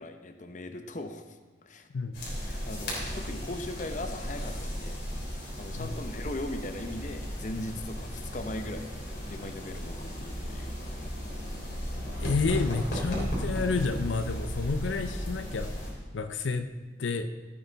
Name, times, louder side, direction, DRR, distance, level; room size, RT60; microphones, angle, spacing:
voice 1, 0.0-1.9 2.5-5.0 5.6-10.8, left 1 dB, 40° left, 7 dB, 0.7 m, -39 dB
sound 1, 2.1-15.9, equal, 60° left, 3.6 m, -35 dB
voice 2, 12.2-15.7 16.1-16.7 17.0-17.3, left 4 dB, 85° left, 9 dB, 0.6 m, -30 dB
14.5 x 8.8 x 4.0 m, 1.4 s
head